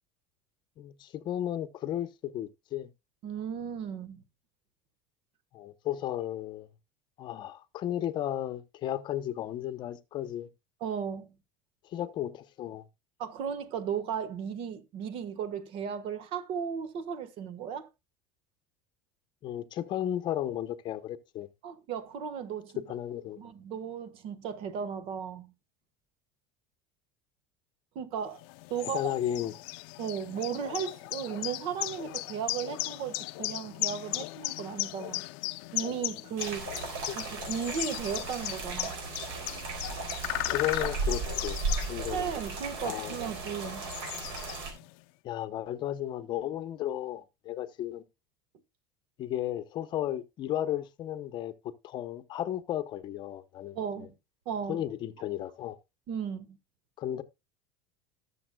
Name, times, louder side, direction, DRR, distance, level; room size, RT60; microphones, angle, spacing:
voice 1, 0.8-2.9 5.5-6.7 7.2-10.5 11.8-12.8 19.4-21.5 22.8-23.4 28.8-29.5 37.1-37.2 40.5-41.6 41.9-42.2 42.8-43.2 45.2-48.0 49.2-54.1 54.7-55.8 57.0-57.2, left 12 dB, 40° left, 0.8 m, -34 dB
voice 2, 3.2-4.2 10.8-11.3 13.2-17.9 21.6-22.8 23.4-25.5 27.9-28.4 28.7-29.0 30.0-35.2 35.7-36.7 37.1-39.0 42.1-43.9 53.7-54.1 54.4-54.8 56.1-56.6, right 7 dB, 50° right, 1.3 m, -35 dB
sound 1, 28.4-44.9, left 22 dB, 70° left, 0.6 m, -37 dB
sound 2, 36.4-44.7, right 4 dB, 90° right, 4.0 m, -36 dB
18.5 x 7.0 x 2.2 m
cardioid pair, 145°, 12 cm